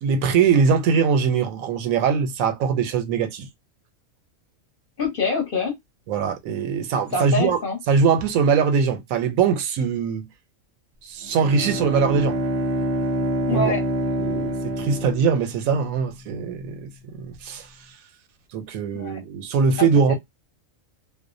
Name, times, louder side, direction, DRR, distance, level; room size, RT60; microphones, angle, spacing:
voice 1, 0.0-3.5 6.1-7.6 7.9-10.3 11.0-12.4 13.5-13.7 14.2-17.7 18.5-20.1, right 6 dB, 90° right, 1.0 m, -22 dB
voice 2, 5.0-5.7 7.1-7.8 13.5-13.8 18.9-19.2 19.8-20.1, left 3 dB, 45° left, 1.0 m, -25 dB
Bowed string instrument, 11.2-16.0, right 1 dB, 60° right, 0.7 m, -26 dB
2.4 x 2.0 x 2.5 m
omnidirectional pair, 1.4 m